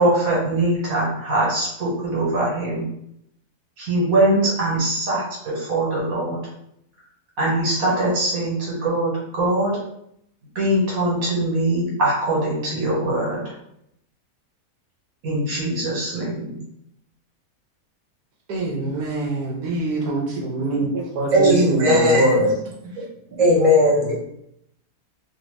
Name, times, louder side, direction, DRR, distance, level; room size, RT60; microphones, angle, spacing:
voice 1, 0.0-2.9 3.8-6.4 7.4-9.7 10.5-13.5 15.2-16.6 21.4-21.7, right 1 dB, 65° right, -5 dB, 1.6 m, -22 dB
voice 2, 18.5-22.5, right 1 dB, 85° right, -1 dB, 1.1 m, -23 dB
voice 3, 21.3-22.4 23.4-24.1, left 1 dB, 30° right, -5 dB, 0.8 m, -17 dB
2.6 x 2.6 x 3.1 m, 0.74 s
omnidirectional pair, 1.6 m